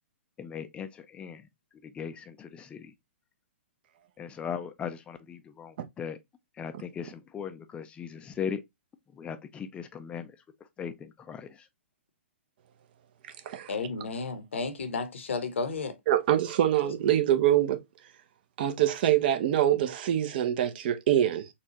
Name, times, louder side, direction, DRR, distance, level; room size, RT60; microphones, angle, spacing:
voice 1, 0.4-1.4 1.9-2.9 4.2-6.2 6.6-8.6 9.2-10.3 10.8-11.5, left 7 dB, 15° left, 0.4 m, -38 dB
voice 2, 13.7-15.9, left 4 dB, 75° left, 0.9 m, -32 dB
voice 3, 16.1-17.8 18.6-21.5, right 11 dB, 50° right, 0.7 m, -24 dB
4.2 x 2.3 x 2.8 m
hypercardioid pair, 125°, 7 cm